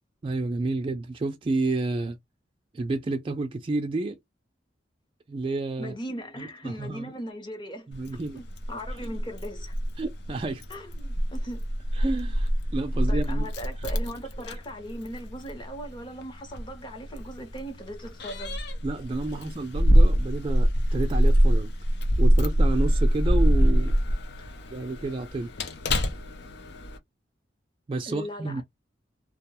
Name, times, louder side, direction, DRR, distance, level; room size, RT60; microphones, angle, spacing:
voice 1, 0.2-2.2 2.7-4.2 5.3-5.9 6.4-7.1 7.9-8.4 10.0-10.6 11.9-13.5 18.8-21.7 22.2-24.0 24.7-25.5 27.9-28.6, right 2 dB, 30° right, 0.3 m, -30 dB
voice 2, 5.8-7.9 8.3-9.8 10.7-11.6 13.1-18.6 24.4-24.6 28.1-28.6, equal, 25° left, 0.8 m, -38 dB
Keys jangling, 7.9-27.0, equal, 65° left, 0.6 m, -25 dB
2.2 x 2.2 x 2.8 m
head